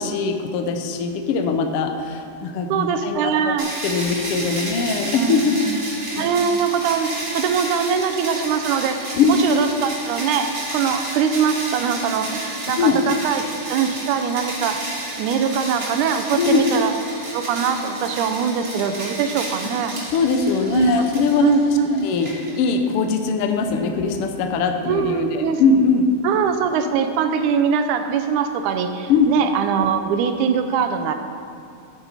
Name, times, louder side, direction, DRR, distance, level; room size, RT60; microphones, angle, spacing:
voice 1, 0.0-3.5 3.8-5.6 6.1-6.3 9.1-9.3 12.8-13.0 16.3-16.6 20.1-21.7 22.0-26.1 29.1-29.3, left 5 dB, 85° left, 5 dB, 1.3 m, -21 dB
voice 2, 2.7-3.7 5.2-5.8 6.2-13.4 13.7-16.9 17.3-20.0 20.7-22.1 24.9-25.6 26.2-31.1, right 7 dB, 80° right, 7 dB, 2.1 m, -22 dB
sound 1, 3.6-22.9, right 1 dB, 40° right, 0.8 m, -31 dB
13.0 x 7.4 x 4.1 m, 2.5 s
omnidirectional pair, 3.5 m